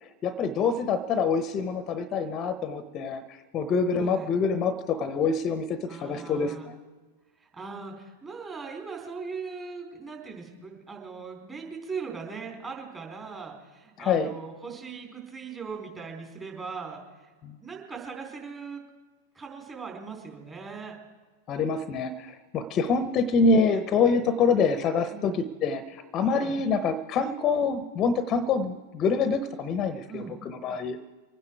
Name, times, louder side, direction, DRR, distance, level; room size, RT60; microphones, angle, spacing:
voice 1, 0.0-6.7 14.0-14.3 17.4-17.6 21.5-31.0, left 4 dB, 35° left, 13 dB, 0.8 m, -26 dB
voice 2, 5.9-6.7 7.4-17.3 17.6-18.8 19.3-21.0 25.1-25.4 26.3-26.6 30.1-30.4, right 5 dB, 20° right, 1 dB, 4.1 m, -39 dB
24.5 x 9.8 x 4.7 m, 1.3 s
figure-of-eight pair, 95°, 0 cm